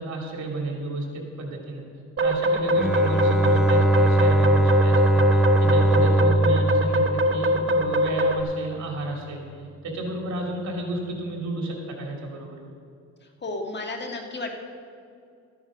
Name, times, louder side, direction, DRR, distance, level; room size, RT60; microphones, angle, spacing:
voice 1, 0.0-1.8 2.2-9.4 9.8-12.6, right 2 dB, 65° right, 0 dB, 3.0 m, -32 dB
sound 1, 2.2-8.4, equal, 45° right, 1.0 m, -23 dB
Bowed string instrument, 2.7-8.0, right 1 dB, ahead, 0.3 m, -21 dB
voice 2, 13.4-14.5, left 2 dB, 35° left, 3 dB, 1.7 m, -32 dB
13.5 x 9.8 x 5.1 m, 2.3 s
cardioid pair, 90°, 30 cm